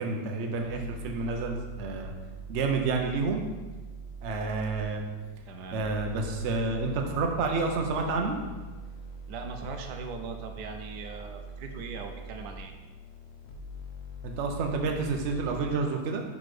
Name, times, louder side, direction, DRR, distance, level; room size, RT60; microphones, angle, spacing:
voice 1, 0.0-2.1 2.5-3.4 4.2-5.0 5.7-8.4 14.2-16.2, right 4 dB, 55° right, 3 dB, 0.8 m, -29 dB
sound 1, 0.6-15.7, equal, 60° left, 0.6 m, -43 dB
voice 2, 5.5-5.8 9.3-12.7, right 4 dB, 70° right, 5 dB, 1.2 m, -40 dB
6.0 x 3.9 x 4.9 m, 1.3 s
omnidirectional pair, 2.0 m